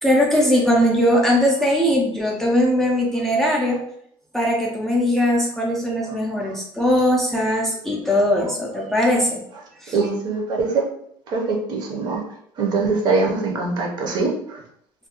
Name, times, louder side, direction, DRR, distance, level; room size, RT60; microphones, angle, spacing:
voice 1, 0.0-3.8 4.3-9.4 9.8-10.0, equal, 5° left, -2 dB, 0.4 m, -20 dB
voice 2, 9.9-10.8 11.3-12.2 12.6-14.6, right 3 dB, 50° right, -1 dB, 0.6 m, -22 dB
2.3 x 2.2 x 2.8 m, 0.70 s
cardioid pair, 145°, 9 cm